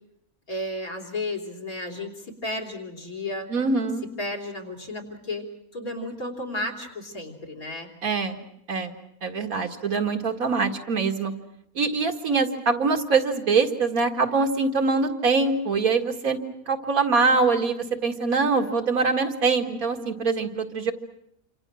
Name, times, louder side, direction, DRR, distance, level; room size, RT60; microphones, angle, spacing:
voice 1, 0.5-3.5 4.2-7.9, left 1 dB, 80° left, 6 dB, 4.3 m, -33 dB
voice 2, 3.5-4.0 8.0-8.4 8.7-9.0 9.2-11.3 11.8-16.4 16.7-20.9, right 4 dB, 80° right, 4 dB, 2.4 m, -23 dB
28.0 x 26.5 x 6.3 m, 0.77 s
omnidirectional pair, 1.5 m